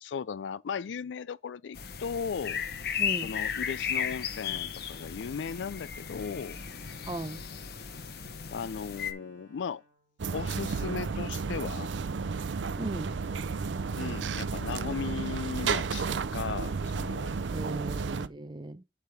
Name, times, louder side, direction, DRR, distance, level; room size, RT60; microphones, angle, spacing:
voice 1, 0.0-2.6 3.2-6.6 8.5-9.8 10.3-11.9 14.0-17.3, left 6 dB, 80° left, 0.4 m, -36 dB
sound 1, 1.7-9.1, left 8 dB, 60° left, 0.8 m, -35 dB
voice 2, 3.0-3.4 7.0-7.5 12.8-13.2 17.5-18.8, right 2 dB, 25° right, 0.6 m, -37 dB
Bowed string instrument, 3.4-10.6, right 1 dB, 40° right, 2.2 m, -60 dB
sound 2, 10.2-18.3, right 5 dB, 80° right, 0.5 m, -32 dB
8.1 x 3.5 x 5.7 m
head